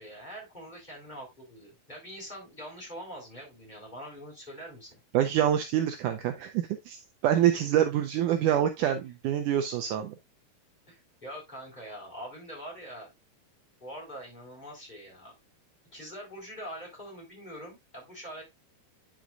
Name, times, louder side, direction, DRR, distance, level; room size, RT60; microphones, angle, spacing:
voice 1, 0.0-5.0 10.9-13.1 13.8-15.3 15.9-18.4, equal, 10° left, -2 dB, 4.1 m, -44 dB
voice 2, 5.1-10.2, right 10 dB, 80° right, 7 dB, 1.9 m, -26 dB
10.0 x 6.2 x 2.5 m, 0.19 s
omnidirectional pair, 4.1 m